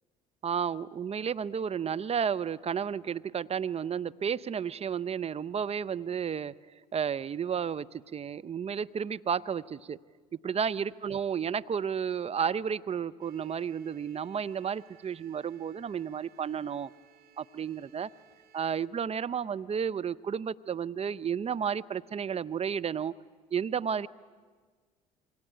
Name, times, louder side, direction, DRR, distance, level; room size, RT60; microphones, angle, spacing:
voice 1, 0.4-6.5 6.9-10.0 10.4-16.9 17.4-18.1 18.5-23.1 23.5-24.1, right 7 dB, 35° right, 14 dB, 0.8 m, -32 dB
sound 1, 13.2-18.9, right 9 dB, 60° right, 3.3 m, -61 dB
27.5 x 23.5 x 9.0 m, 1.5 s
hypercardioid pair, 65°, 18 cm